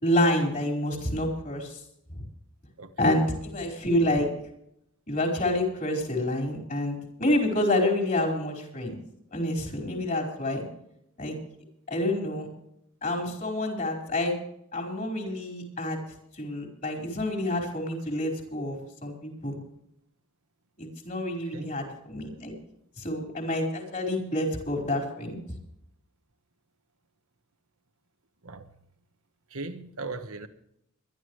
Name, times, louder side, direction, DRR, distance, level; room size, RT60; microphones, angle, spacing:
voice 1, 0.0-1.8 2.1-2.2 3.0-4.3 5.1-9.0 9.3-10.6 11.2-11.4 11.9-12.5 13.0-14.4 14.7-16.0 16.4-19.6 20.8-22.5 23.0-25.4, left 1 dB, 40° left, 4.8 m, -28 dB
voice 2, 2.8-3.2 21.4-21.7 28.4-28.7 29.5-30.5, right 3 dB, 75° right, 1.3 m, -38 dB
22.5 x 12.0 x 3.2 m
head